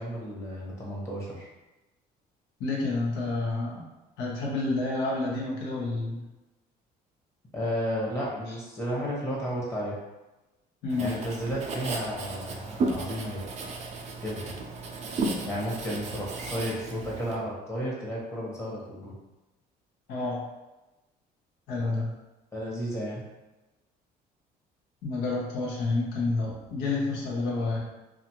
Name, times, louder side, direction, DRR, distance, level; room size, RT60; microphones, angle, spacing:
voice 1, 0.0-1.5 7.5-10.0 11.0-13.4 14.2-14.5 15.4-19.1 22.5-23.2, equal, 15° left, -5 dB, 0.9 m, -33 dB
voice 2, 2.6-3.8 4.2-6.2 10.8-11.1 20.1-20.4 21.7-22.1 25.0-27.8, left 3 dB, 90° left, -3 dB, 0.9 m, -29 dB
Writing, 10.9-17.4, right 3 dB, 40° right, 0.4 m, -34 dB
2.5 x 2.4 x 2.9 m, 1.0 s
cardioid pair, 110°, 17 cm